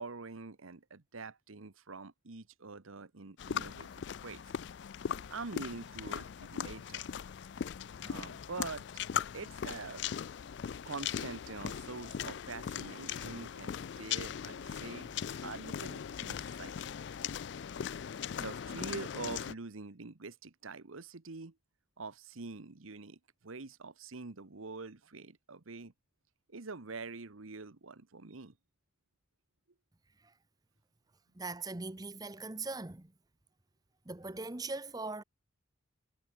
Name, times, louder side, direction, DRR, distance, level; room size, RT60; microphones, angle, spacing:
voice 1, 0.0-3.9 4.2-4.4 5.3-7.1 8.0-9.0 9.3-10.1 10.8-15.1 15.4-16.9 18.4-21.5 22.0-25.9 26.5-28.5, right 4 dB, 85° right, 1.2 m, -45 dB
sound 1, 3.4-19.5, left 8 dB, 55° left, 0.4 m, -39 dB
voice 2, 31.3-33.1 34.1-35.2, right 3 dB, 20° right, 0.8 m, -40 dB
head